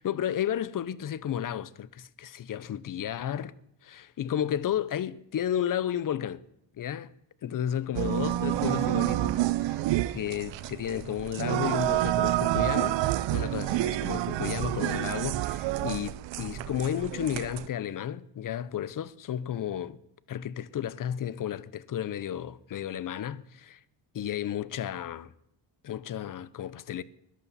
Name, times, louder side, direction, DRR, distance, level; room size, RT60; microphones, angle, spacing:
voice 1, 0.0-3.6 3.8-6.4 6.8-7.1 7.4-9.8 10.1-13.0 13.3-20.0 20.3-23.8 24.1-25.3 25.8-27.0, left 10 dB, 50° left, 0.7 m, -33 dB
sound 1, 8.0-17.7, right 15 dB, 80° right, 0.7 m, -29 dB
20.5 x 11.5 x 4.1 m
cardioid pair, 135°, 43 cm